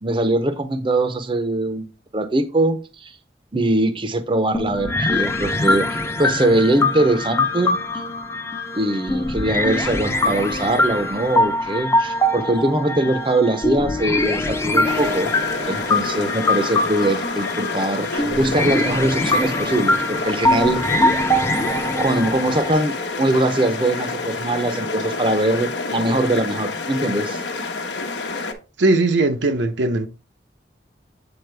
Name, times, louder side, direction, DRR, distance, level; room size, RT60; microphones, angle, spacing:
voice 1, 0.0-3.2 3.5-7.8 8.7-15.3 15.7-20.8 22.0-27.4, right 1 dB, 25° right, 0.6 m, -22 dB
sound 1, 4.5-22.7, left 1 dB, 15° left, 0.5 m, -23 dB
sound 2, 14.8-28.5, left 3 dB, 80° left, 1.0 m, -28 dB
voice 2, 28.8-30.1, right 2 dB, 80° right, 0.7 m, -19 dB
7.9 x 4.2 x 3.3 m
head